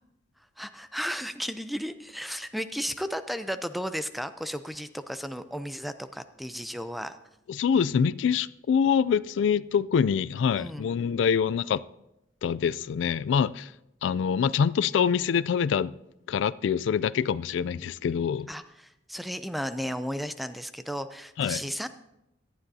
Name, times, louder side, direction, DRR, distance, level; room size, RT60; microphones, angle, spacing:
voice 1, 0.6-7.2 10.6-10.9 18.5-21.9, equal, ahead, 0.5 m, -34 dB
voice 2, 7.5-11.8 12.4-13.7 14.0-15.9 16.3-18.5 21.4-21.6, left 7 dB, 75° left, 0.3 m, -25 dB
17.5 x 11.5 x 2.7 m
head